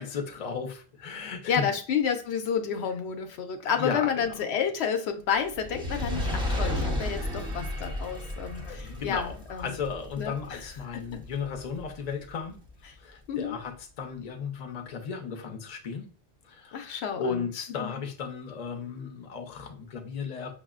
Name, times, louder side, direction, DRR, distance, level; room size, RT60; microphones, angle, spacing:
voice 1, 0.0-1.6 3.8-4.4 8.4-12.6 13.0-16.1 16.4-16.8 17.2-20.5, left 6 dB, 45° left, 5 dB, 0.6 m, -35 dB
voice 2, 1.5-9.8 10.2-10.6 10.9-11.2 13.3-13.6 16.7-17.5 17.8-17.9, left 7 dB, 75° left, 6 dB, 0.8 m, -30 dB
Fire, 5.5-12.0 12.7-12.8, left 1 dB, 5° right, 0.7 m, -33 dB
5.9 x 2.0 x 2.3 m, 0.41 s
omnidirectional pair, 1.1 m